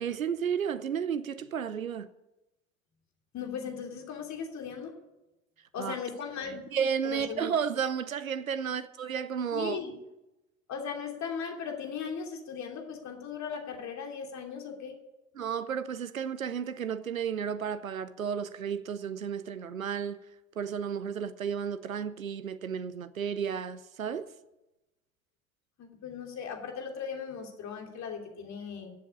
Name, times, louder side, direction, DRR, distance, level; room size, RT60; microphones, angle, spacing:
voice 1, 0.0-2.1 5.8-6.0 6.7-9.8 15.4-20.2 20.6-24.3, right 7 dB, 90° right, 0.6 m, -32 dB
voice 2, 3.3-4.9 5.7-6.6 7.0-7.5 9.5-10.0 10.7-14.9 25.8-28.9, left 6 dB, 45° left, 3.1 m, -38 dB
15.5 x 7.6 x 8.4 m
figure-of-eight pair, 65°, 40 cm